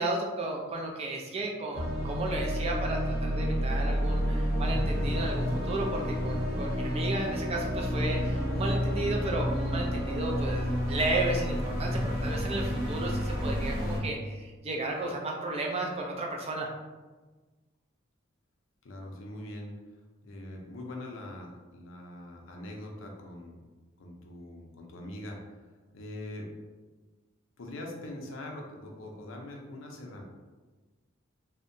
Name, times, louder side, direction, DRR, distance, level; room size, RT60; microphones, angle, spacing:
voice 1, 0.0-16.7, right 2 dB, 30° right, 0 dB, 0.3 m, -33 dB
sound 1, 1.7-14.0, equal, 75° right, 0.8 m, -30 dB
voice 2, 18.8-19.8 20.2-23.6 24.0-25.4 25.9-26.5 27.6-30.2, left 1 dB, 70° left, 1 dB, 0.5 m, -42 dB
2.7 x 2.1 x 2.5 m, 1.3 s
head